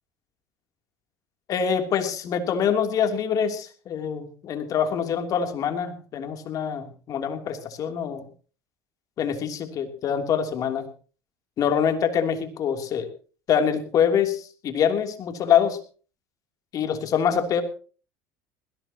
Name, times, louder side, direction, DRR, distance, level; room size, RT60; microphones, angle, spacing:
voice 1, 1.5-8.3 9.2-10.9 11.6-13.1 13.5-15.8 16.7-17.6, left 8 dB, 50° left, 6 dB, 3.1 m, -25 dB
20.5 x 16.5 x 2.9 m, 0.38 s
supercardioid pair, 90°, 8 cm